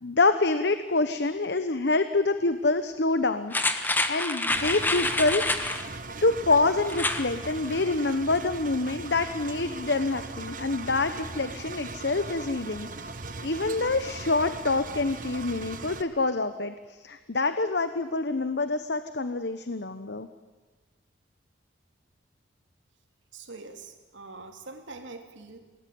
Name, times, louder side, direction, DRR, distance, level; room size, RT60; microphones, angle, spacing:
voice 1, 0.0-5.7 6.2-12.9 13.4-20.3, left 3 dB, 60° left, 10 dB, 1.0 m, -26 dB
sound 1, 3.5-5.9 6.9-7.3 7.7-7.8, left 2 dB, 10° left, 1.4 m, -27 dB
Engine, 4.5-16.0, right 3 dB, 45° right, 1.4 m, -39 dB
voice 2, 23.3-25.6, right 3 dB, 80° right, 5 dB, 3.1 m, -44 dB
28.0 x 19.5 x 9.5 m, 1.4 s
head